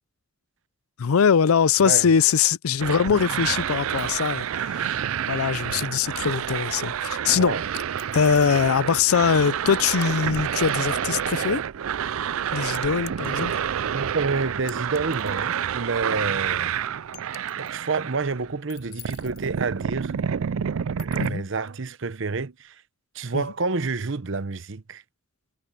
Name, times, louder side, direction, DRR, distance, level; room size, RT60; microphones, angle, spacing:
voice 1, 1.0-5.0 5.3-7.6 8.1-11.6 12.5-13.6 21.2-21.4 23.3-23.4, left 7 dB, 80° left, 0.5 m, -22 dB
sound 1, 2.8-18.5 18.8-21.3, right 8 dB, 75° right, 0.4 m, -28 dB
sound 2, 4.0-4.5 5.8-6.5 7.7-8.6 10.0-10.4 10.7-11.5 12.7-13.8 14.7-15.7 16.0-16.1 17.1-17.9 18.7-19.5 21.0-21.3, left 12 dB, 50° left, 5.0 m, -45 dB
voice 2, 13.9-16.7 17.6-20.2 20.9-22.8 23.1-25.0, right 4 dB, 60° right, 0.8 m, -28 dB
head